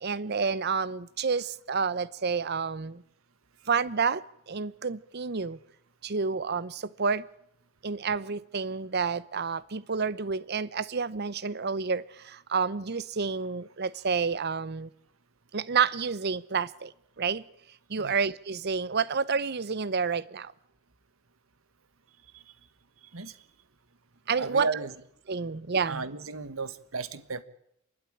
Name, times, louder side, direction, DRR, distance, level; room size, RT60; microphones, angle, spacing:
voice 1, 0.0-3.0 3.7-4.2 4.5-5.6 6.0-7.2 7.8-12.0 12.5-14.9 15.5-16.9 17.2-17.4 17.9-20.5 24.3-24.7 25.3-26.0, right 5 dB, 50° right, 0.8 m, -29 dB
voice 2, 22.2-22.6 23.0-23.5 24.4-24.9 25.9-27.4, right 4 dB, 85° right, 1.4 m, -35 dB
28.5 x 12.0 x 9.9 m
head